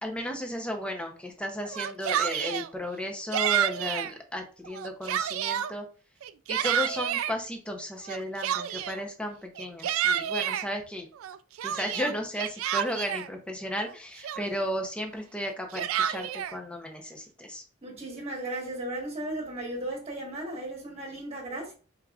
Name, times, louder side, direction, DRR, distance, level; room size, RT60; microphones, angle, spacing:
voice 1, 0.0-5.9 6.5-11.1 11.6-17.6, equal, 5° left, 0.6 m, -34 dB
Yell, 1.6-2.7 3.3-4.1 4.6-5.7 6.2-7.3 8.1-9.0 9.6-10.7 11.2-13.3 13.9-14.0 14.2-14.7 15.5-16.5, right 10 dB, 75° right, 0.3 m, -29 dB
voice 2, 17.8-21.7, right 1 dB, 30° right, 1.4 m, -35 dB
4.6 x 3.6 x 2.3 m
head